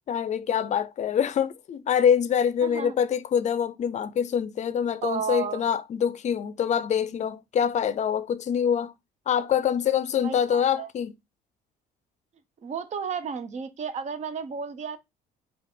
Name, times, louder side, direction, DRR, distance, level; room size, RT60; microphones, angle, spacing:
voice 1, 0.1-8.9 9.3-11.1, left 8 dB, 45° left, 0.5 m, -25 dB
voice 2, 2.6-3.0 5.0-5.6 10.2-10.9 12.6-15.0, right 6 dB, 45° right, 0.8 m, -33 dB
5.0 x 2.4 x 4.3 m
cardioid pair, 110°, 17 cm